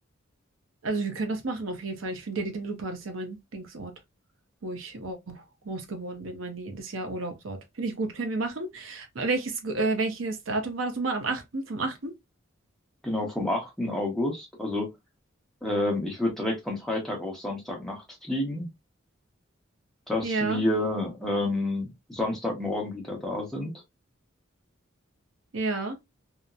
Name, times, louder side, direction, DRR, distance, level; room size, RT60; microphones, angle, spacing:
voice 1, 0.8-3.9 4.6-12.1 20.2-20.6 25.5-26.0, right 3 dB, 85° right, 0.7 m, -31 dB
voice 2, 13.0-14.9 15.6-18.7 20.1-23.7, left 1 dB, ahead, 0.9 m, -29 dB
2.9 x 2.1 x 2.4 m
head